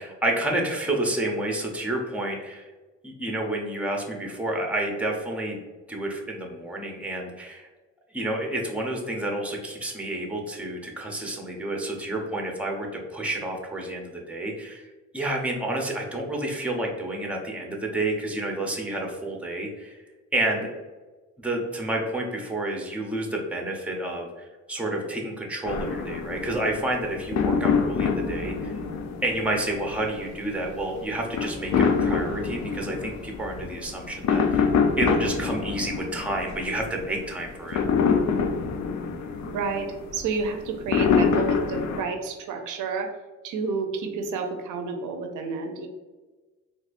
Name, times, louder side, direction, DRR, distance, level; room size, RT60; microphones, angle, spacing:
voice 1, 0.0-2.6 3.0-5.6 5.9-7.7 8.1-20.0 20.3-20.7 21.4-28.8 29.2-34.7 35.0-37.8, right 1 dB, 5° right, 1 dB, 0.7 m, -30 dB
sound 1, 25.6-42.0, left 5 dB, 65° left, 0.5 m, -26 dB
voice 2, 39.5-43.1 43.4-45.9, right 4 dB, 80° right, 5 dB, 0.6 m, -30 dB
4.1 x 2.5 x 2.5 m, 1.3 s
cardioid pair, 90°, 30 cm